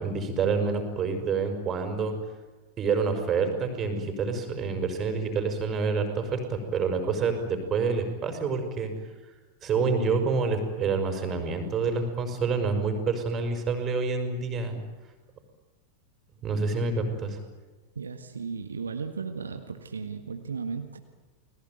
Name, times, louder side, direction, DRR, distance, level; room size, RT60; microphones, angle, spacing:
voice 1, 0.0-2.2 2.8-8.9 9.6-14.8 16.4-17.4, right 4 dB, 25° right, 6 dB, 5.6 m, -27 dB
voice 2, 17.9-21.0, right 5 dB, 75° right, 6 dB, 1.7 m, -35 dB
29.5 x 20.0 x 9.3 m, 1.2 s
figure-of-eight pair, 90°, 0 cm